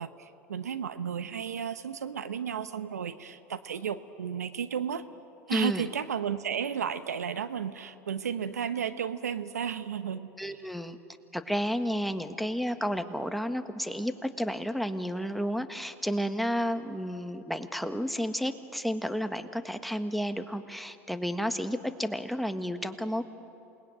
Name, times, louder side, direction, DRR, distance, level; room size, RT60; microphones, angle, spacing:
voice 1, 0.0-5.1 5.5-10.3, right 8 dB, 90° right, 12 dB, 0.9 m, -33 dB
voice 2, 5.5-5.9 10.4-11.0 11.3-23.3, equal, ahead, 8 dB, 1.5 m, -31 dB
28.0 x 20.0 x 9.2 m, 2.8 s
hypercardioid pair, 85°, 8 cm